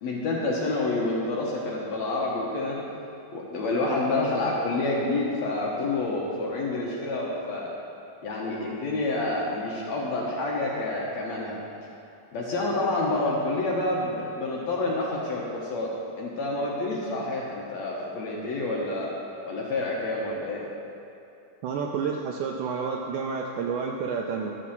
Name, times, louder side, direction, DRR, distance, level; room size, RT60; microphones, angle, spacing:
voice 1, 0.0-2.8 3.3-7.7 8.2-11.6 12.3-15.9 16.2-19.1 19.5-20.7, left 2 dB, 60° left, -3 dB, 2.0 m, -28 dB
voice 2, 21.6-24.6, right 5 dB, 80° right, 1 dB, 1.8 m, -30 dB
12.5 x 6.1 x 7.0 m, 2.8 s
omnidirectional pair, 4.1 m